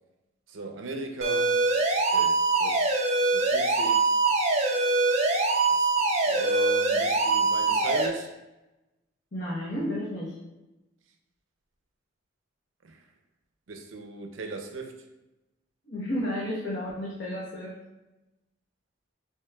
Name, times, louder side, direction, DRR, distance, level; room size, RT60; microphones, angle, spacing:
voice 1, 0.5-1.6 2.1-2.9 3.2-4.1 5.7-5.9 6.3-8.3 12.8-13.1 13.7-15.1, right 3 dB, 75° right, 4 dB, 0.6 m, -38 dB
sound 1, 1.2-8.1, right 3 dB, 35° right, 0.6 m, -23 dB
voice 2, 9.3-10.4 15.9-17.8, left 1 dB, 65° left, -7 dB, 1.0 m, -32 dB
6.6 x 3.1 x 2.3 m, 0.99 s
head